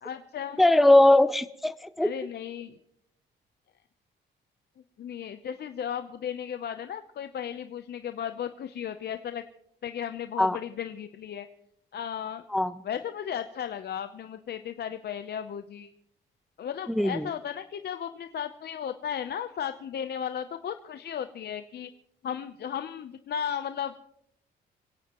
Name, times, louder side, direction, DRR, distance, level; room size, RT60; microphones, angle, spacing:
voice 1, 0.0-0.6 2.0-2.7 5.0-9.4 9.8-11.5 11.9-12.4 12.8-15.9 16.6-21.9 22.2-24.0, left 9 dB, 55° left, 9 dB, 0.7 m, -35 dB
voice 2, 0.6-2.1 10.4-10.6 12.5-12.7 16.9-17.3, left 1 dB, ahead, 14 dB, 0.5 m, -20 dB
25.5 x 16.5 x 3.0 m, 0.74 s
cardioid pair, 90°, 20 cm